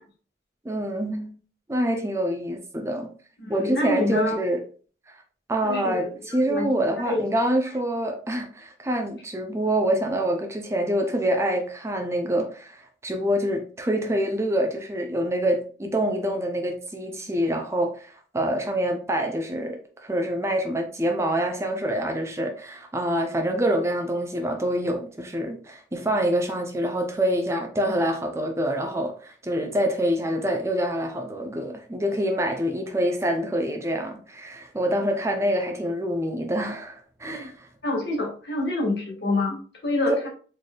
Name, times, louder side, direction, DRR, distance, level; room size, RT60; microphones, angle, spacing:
voice 1, 0.6-1.3 1.7-3.1 3.5-4.6 5.5-37.7 40.2-40.3, right 1 dB, 15° right, 0.5 m, -26 dB
voice 2, 3.4-4.4 5.6-5.9 6.3-6.7 7.0-7.3 37.8-40.3, left 2 dB, 75° left, 1.4 m, -26 dB
4.0 x 3.3 x 2.2 m
head